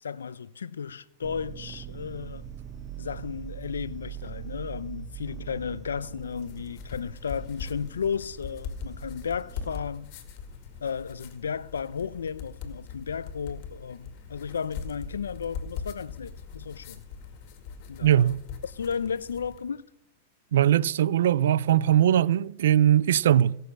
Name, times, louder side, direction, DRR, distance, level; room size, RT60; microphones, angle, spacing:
voice 1, 0.0-2.5 3.0-10.1 10.8-17.0 17.9-18.3 18.6-19.9, left 6 dB, 90° left, 0.5 m, -34 dB
sound 1, 1.2-9.8, right 10 dB, 25° right, 0.7 m, -42 dB
sound 2, 6.2-19.7, left 6 dB, 55° left, 2.0 m, -41 dB
voice 2, 18.0-18.4 20.5-23.6, right 11 dB, 75° right, 0.4 m, -21 dB
17.5 x 6.5 x 6.5 m
hypercardioid pair, 110°, 0 cm